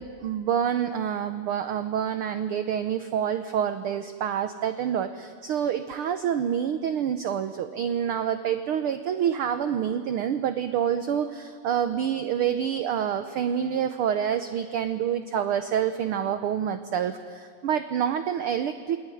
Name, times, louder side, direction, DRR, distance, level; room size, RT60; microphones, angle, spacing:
voice 1, 0.0-19.0, right 9 dB, 65° right, 10 dB, 1.4 m, -27 dB
28.5 x 19.0 x 9.9 m, 2.1 s
omnidirectional pair, 3.3 m